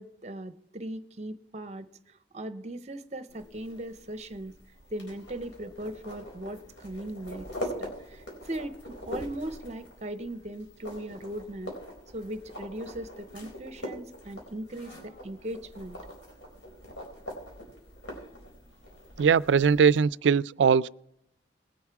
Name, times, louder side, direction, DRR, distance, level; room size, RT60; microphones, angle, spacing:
voice 1, 0.0-4.5 4.9-11.7 12.1-16.0, right 1 dB, 40° right, 0.8 m, -39 dB
sound 1, 3.3-20.0, equal, 90° left, 4.2 m, -43 dB
voice 2, 19.2-20.9, right 6 dB, 80° right, 0.3 m, -21 dB
20.0 x 7.2 x 4.7 m
head